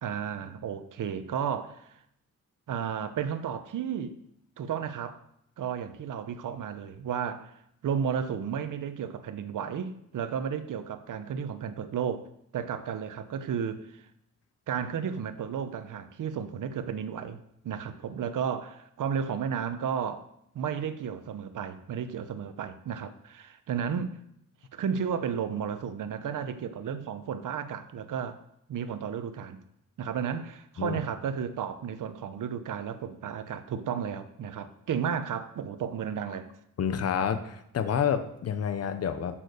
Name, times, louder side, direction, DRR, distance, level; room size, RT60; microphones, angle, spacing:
voice 1, 0.0-1.9 2.7-4.1 4.6-5.2 5.6-7.5 7.8-12.3 12.5-14.0 14.7-17.4 17.6-20.3 20.5-24.2 24.7-28.4 28.7-29.6 30.0-36.5, right 7 dB, 65° right, 10 dB, 1.0 m, -33 dB
voice 2, 36.8-39.4, left 7 dB, 45° left, 10 dB, 0.9 m, -29 dB
10.5 x 7.5 x 6.6 m, 0.75 s
wide cardioid pair, 160°, 34 cm